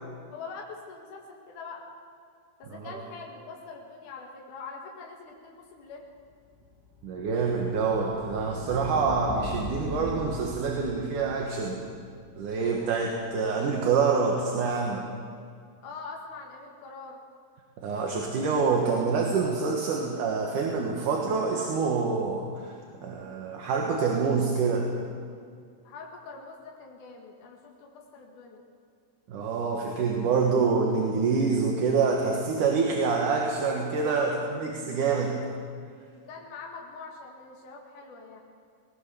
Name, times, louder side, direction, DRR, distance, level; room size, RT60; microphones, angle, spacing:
voice 1, 0.3-1.8 2.6-6.0 12.6-12.9 15.8-17.2 25.8-28.6 34.1-34.5 36.1-38.4, left 4 dB, 70° left, 0 dB, 3.3 m, -43 dB
voice 2, 2.7-3.0 7.0-11.8 12.4-15.0 17.8-22.7 23.0-24.9 29.3-35.4, right 5 dB, 70° right, 0 dB, 3.0 m, -26 dB
sound 1, 6.6-13.5, left 1 dB, 5° right, 6.3 m, -40 dB
19.5 x 19.5 x 7.0 m, 2.2 s
omnidirectional pair, 3.8 m